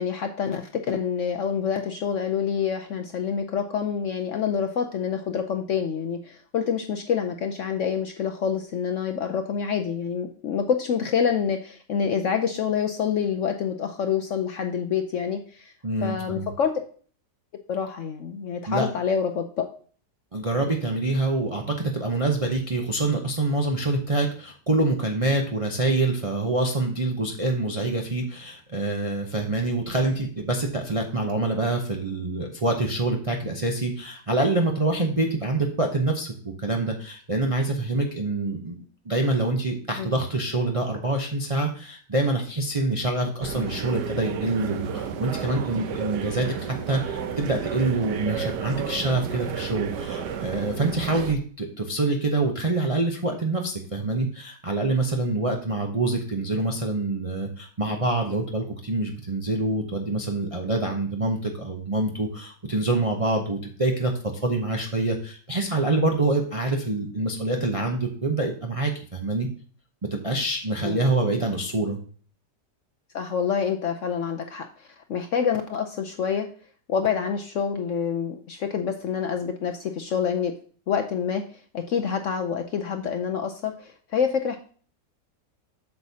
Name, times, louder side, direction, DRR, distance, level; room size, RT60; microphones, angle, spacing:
voice 1, 0.0-15.7 16.0-16.8 17.7-19.6 40.0-40.1 70.8-71.0 73.1-76.5 76.9-80.5 80.9-81.4 81.7-84.6, left 7 dB, 65° left, 5 dB, 0.8 m, -27 dB
voice 2, 15.8-16.5 18.7-18.9 20.3-38.8 39.0-64.1 64.4-69.5 70.1-72.0, right 2 dB, 35° right, 2 dB, 0.5 m, -26 dB
sound 1, 43.4-51.4, right 7 dB, 80° right, 1.3 m, -32 dB
8.0 x 6.7 x 2.8 m, 0.43 s
omnidirectional pair, 1.8 m